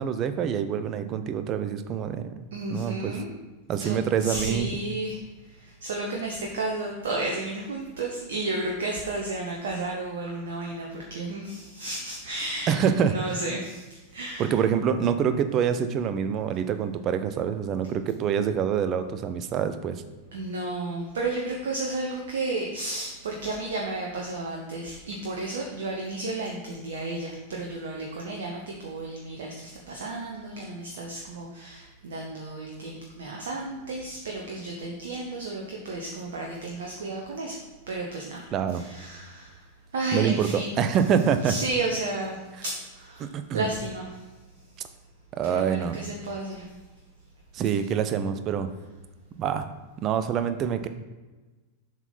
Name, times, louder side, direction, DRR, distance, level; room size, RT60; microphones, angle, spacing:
voice 1, 0.0-2.3 2.7-3.1 3.7-4.7 12.7-13.1 14.4-20.0 38.5-38.8 40.1-40.5 40.8-41.5 43.2-43.7 45.3-46.0 47.5-48.7 49.4-49.7 50.0-50.9, right 8 dB, 35° right, 10 dB, 0.6 m, -26 dB
voice 2, 2.5-3.3 3.8-14.5 20.3-41.0 41.4-44.9 45.4-46.8, right 2 dB, 60° right, -1 dB, 0.9 m, -33 dB
7.1 x 4.1 x 5.4 m, 1.2 s
figure-of-eight pair, 90°, 0 cm